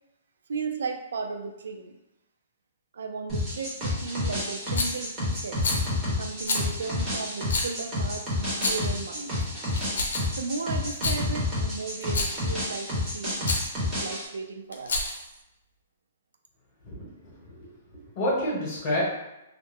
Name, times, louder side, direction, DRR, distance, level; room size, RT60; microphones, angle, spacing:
voice 1, 0.5-1.9 2.9-5.6 6.2-9.4 10.4-13.4 13.8-15.2, right 4 dB, 80° right, 5 dB, 0.3 m, -35 dB
sound 1, 3.3-14.3, left 2 dB, 15° right, 0.9 m, -30 dB
Rattle, 4.7-5.0 5.6-5.9 6.5-6.7 7.5-7.7 8.5-8.9 9.7-10.4 10.9-11.2 12.0-12.4 13.4-13.7 14.7-15.3, left 2 dB, 85° left, 0.6 m, -28 dB
voice 2, 16.8-19.0, left 1 dB, 30° left, -6 dB, 1.1 m, -30 dB
2.4 x 2.1 x 3.3 m, 0.91 s
hypercardioid pair, 170°, 0 cm